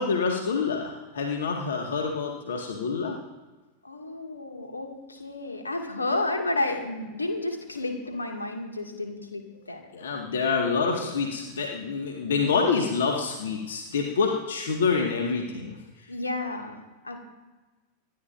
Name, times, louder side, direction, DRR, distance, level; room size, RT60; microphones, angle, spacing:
voice 1, 0.0-3.2 9.9-15.8, left 5 dB, 65° left, 1 dB, 1.9 m, -27 dB
voice 2, 3.8-9.8 10.7-11.2 16.1-16.8 17.0-17.2, left 2 dB, 80° left, 2 dB, 2.3 m, -31 dB
27.0 x 11.5 x 2.7 m, 1.2 s
figure-of-eight pair, 90°, 0 cm